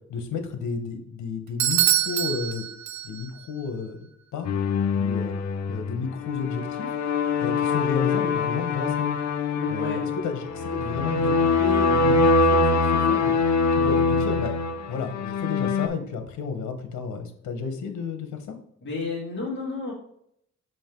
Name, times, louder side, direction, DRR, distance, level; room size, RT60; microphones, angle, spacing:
voice 1, 0.1-2.7 3.0-4.5 4.9-5.3 5.7-6.9 7.4-9.2 9.7-12.8 13.1-13.3 13.7-14.6 14.9-18.6, left 5 dB, 90° left, 7 dB, 1.2 m, -32 dB
Bell / Doorbell, 1.6-3.4, right 11 dB, 70° right, 0.6 m, -25 dB
sound 1, 4.4-15.9, left 4 dB, 65° left, 0.8 m, -24 dB
voice 2, 9.5-10.0 18.8-19.9, left 3 dB, 40° left, -5 dB, 2.7 m, -31 dB
5.5 x 5.1 x 3.8 m, 0.71 s
cardioid pair, 125°, 29 cm